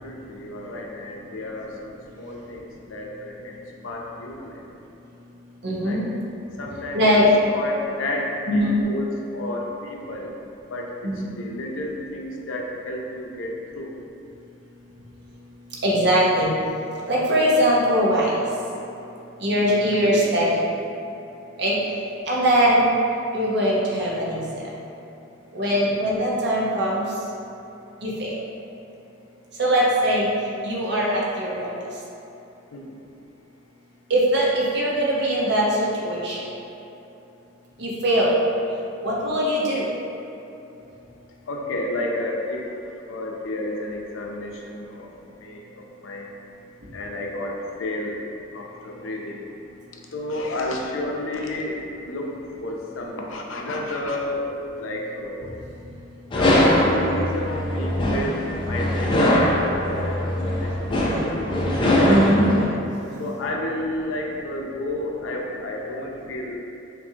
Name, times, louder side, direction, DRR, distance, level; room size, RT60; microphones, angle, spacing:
voice 1, 0.0-4.6 5.8-6.0 6.6-10.3 10.7-14.0 25.6-25.7 32.7-33.0 41.5-46.3 46.9-48.2 48.5-49.5 50.1-51.8 52.1-54.5 54.8-55.6 56.3-61.4 62.0-62.2 63.2-66.6, left 1 dB, 80° left, 0 dB, 0.5 m, -31 dB
voice 2, 5.6-6.1 6.9-7.2 8.5-8.8 11.0-11.3 15.8-16.5 17.1-18.4 19.4-20.6 21.6-21.8 22.3-22.9 23.3-24.6 25.5-27.0 28.0-28.3 29.6-30.3 30.6-31.7 34.1-36.5 37.8-38.3 39.0-39.9 62.0-62.5, equal, 55° right, -5 dB, 0.8 m, -21 dB
sound 1, 56.3-62.7, left 1 dB, 25° left, 0.4 m, -21 dB
6.0 x 2.6 x 2.7 m, 2.9 s
head